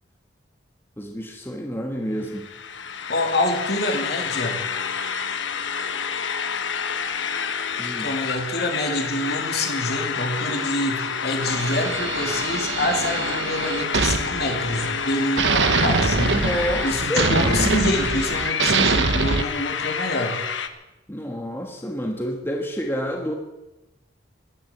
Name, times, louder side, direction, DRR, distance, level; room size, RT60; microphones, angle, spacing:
voice 1, 1.0-2.5 7.8-8.1 16.3-17.7 21.1-23.3, equal, 10° left, 2 dB, 1.5 m, -28 dB
sound 1, 2.2-20.7, left 6 dB, 85° left, 1.1 m, -28 dB
voice 2, 3.1-4.6 8.0-16.4 16.8-20.4, left 1 dB, 55° left, 3 dB, 2.9 m, -26 dB
sound 2, 11.4-15.0 15.4-19.4, right 4 dB, 75° right, 1.0 m, -24 dB
16.0 x 11.5 x 7.5 m, 1.0 s
head